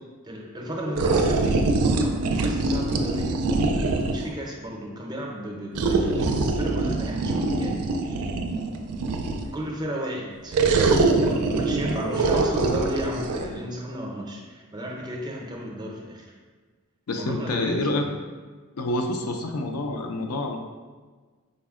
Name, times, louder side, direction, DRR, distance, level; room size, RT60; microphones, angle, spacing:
voice 1, 0.3-3.7 3.9-8.2 9.5-10.6 11.2-16.3 17.1-18.1, equal, 20° right, -1 dB, 0.5 m, -34 dB
sound 1, 1.0-4.3 5.7-9.6 10.5-13.5, right 3 dB, 90° right, 0.4 m, -23 dB
voice 2, 17.1-18.0 18.8-20.6, left 2 dB, 85° left, 4 dB, 0.5 m, -27 dB
5.2 x 2.1 x 3.5 m, 1.4 s
head